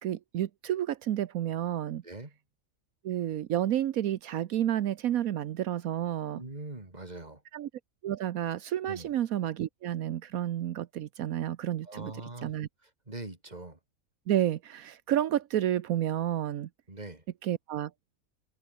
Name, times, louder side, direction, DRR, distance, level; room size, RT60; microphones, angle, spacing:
voice 1, 0.0-2.0 3.0-6.4 7.5-7.7 8.0-12.1 12.4-12.7 14.3-16.7 17.4-17.9, right 11 dB, 80° right, 1.2 m, -30 dB
voice 2, 2.0-2.4 6.3-7.4 8.9-9.1 11.8-12.5 13.1-13.8 16.9-17.2, right 2 dB, 30° right, 3.4 m, -42 dB
omnidirectional pair, 1.5 m